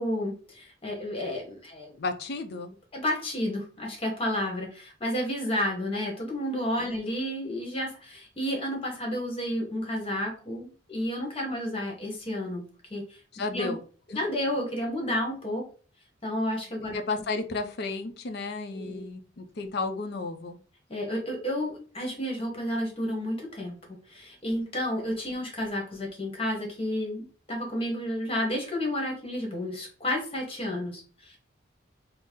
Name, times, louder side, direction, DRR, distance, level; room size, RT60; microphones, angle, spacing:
voice 1, 0.0-2.0 2.9-12.6 12.9-13.2 13.5-13.8 14.1-15.6 16.2-17.0 18.7-19.0 20.9-31.4, left 1 dB, 30° left, 0 dB, 1.1 m, -31 dB
voice 2, 2.0-2.7 6.8-7.0 13.3-13.8 14.1-14.2 16.9-20.6, left 3 dB, 55° left, 7 dB, 0.5 m, -33 dB
4.0 x 2.0 x 3.6 m, 0.39 s
head